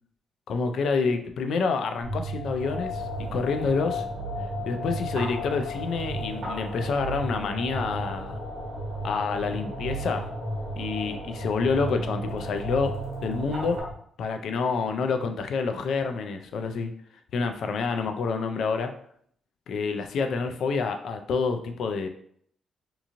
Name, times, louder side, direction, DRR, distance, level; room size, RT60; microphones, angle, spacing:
voice 1, 0.5-4.0 4.7-8.4 9.0-10.3 10.8-12.9 13.2-13.8 14.2-16.9 17.3-18.9 19.7-22.1, left 4 dB, 70° left, 6 dB, 0.3 m, -28 dB
sound 1, 2.0-13.9, right 1 dB, 40° left, 1.3 m, -34 dB
sound 2, 2.6-13.8, equal, 65° right, 0.9 m, -40 dB
2.9 x 2.5 x 2.6 m, 0.64 s
cardioid pair, 135°, 0 cm